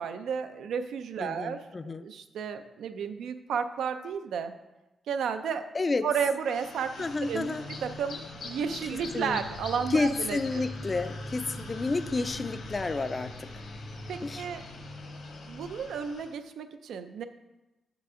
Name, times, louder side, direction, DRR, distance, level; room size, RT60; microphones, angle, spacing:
voice 1, 0.0-1.6 2.0-4.5 5.1-5.7 6.0-7.6 7.8-10.6 14.1-14.6 15.5-17.2, right 7 dB, 90° right, 9 dB, 0.4 m, -32 dB
voice 2, 1.2-2.1 5.7-6.1 7.0-7.7 8.9-9.4 9.9-13.5 14.2-14.5, left 3 dB, 30° left, 11 dB, 0.3 m, -30 dB
sound 1, 6.4-16.3, left 2 dB, 75° left, 1.3 m, -41 dB
6.8 x 5.8 x 3.7 m, 1.0 s
cardioid pair, 120°, 0 cm